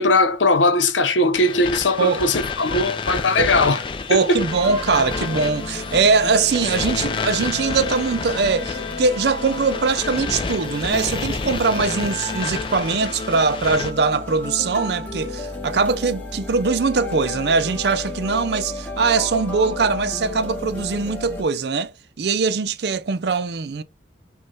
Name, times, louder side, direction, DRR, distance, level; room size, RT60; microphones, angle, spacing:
voice 1, 0.0-3.8 4.1-4.5, left 2 dB, 85° left, 0.8 m, -19 dB
sound 1, 1.3-13.9, left 5 dB, 25° left, 0.4 m, -30 dB
voice 2, 4.1-23.8, right 4 dB, 60° right, 0.5 m, -21 dB
sound 2, 4.5-21.4, left 2 dB, 10° left, 1.0 m, -33 dB
5.3 x 2.3 x 4.3 m
head